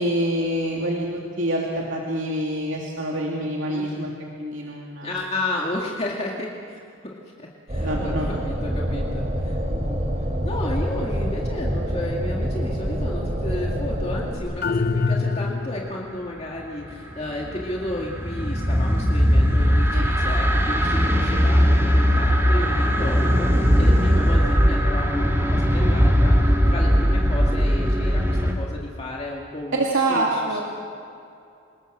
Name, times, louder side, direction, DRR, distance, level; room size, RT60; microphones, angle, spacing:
voice 1, 0.0-4.1 4.4-5.2 7.8-8.4 19.9-20.1 29.7-30.6, right 1 dB, 75° right, -2 dB, 2.7 m, -26 dB
voice 2, 5.0-10.0 10.4-30.6, left 1 dB, 30° left, -2 dB, 2.1 m, -33 dB
sound 1, 7.7-14.4, equal, 35° right, 3.4 m, -26 dB
sound 2, 14.6-16.1, left 4 dB, 50° left, 0.6 m, -24 dB
sound 3, 16.8-28.5, equal, 15° right, 2.5 m, -19 dB
27.5 x 20.5 x 6.6 m, 2.5 s
head